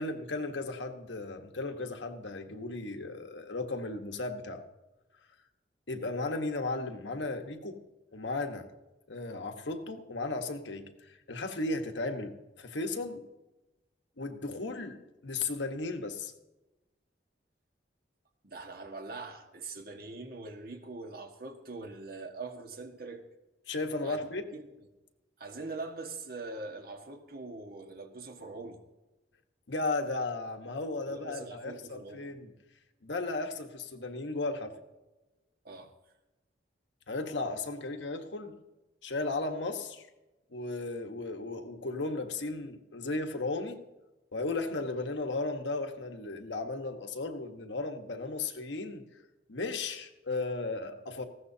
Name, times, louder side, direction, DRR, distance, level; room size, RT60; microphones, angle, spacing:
voice 1, 0.0-4.6 5.9-7.8 8.1-8.7 9.1-13.3 14.2-16.3 23.7-24.4 29.7-32.5 33.0-34.8 37.1-38.6 39.0-40.1 40.5-43.8 44.3-49.2 49.5-51.2, left 2 dB, 90° left, 1.4 m, -35 dB
voice 2, 18.4-23.2 24.0-24.9 25.4-28.8 31.1-32.3 35.6-35.9, right 3 dB, 55° right, 1.6 m, -43 dB
19.0 x 15.5 x 2.8 m
head